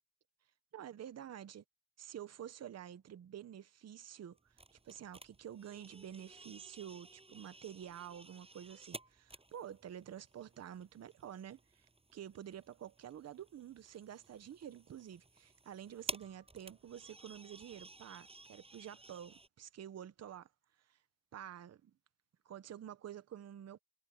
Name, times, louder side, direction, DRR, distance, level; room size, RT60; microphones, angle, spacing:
voice 1, 0.7-1.6 2.0-4.4 4.7-20.5 20.9-21.0 21.3-21.9 22.4-23.8, right 10 dB, 55° right, 1.1 m, -49 dB
sound 1, 4.3-19.5, right 2 dB, 20° right, 7.6 m, -53 dB
cardioid pair, 90°, 31 cm